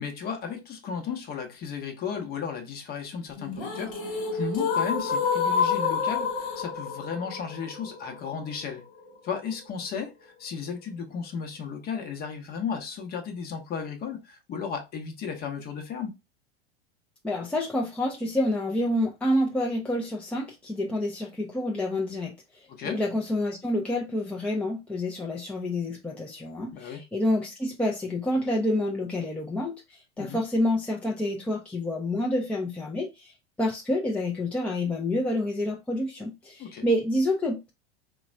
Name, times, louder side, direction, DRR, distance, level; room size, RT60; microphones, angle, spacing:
voice 1, 0.0-8.8 9.2-16.1 22.7-23.0 26.7-27.0 30.2-30.4 36.6-36.8, left 6 dB, 30° left, 0.9 m, -34 dB
sound 1, 3.4-9.4, left 5 dB, 55° left, 1.4 m, -29 dB
voice 2, 17.2-22.3 22.8-33.3 33.6-37.7, left 1 dB, 5° left, 0.5 m, -28 dB
3.9 x 2.3 x 2.5 m
figure-of-eight pair, 90°, 31 cm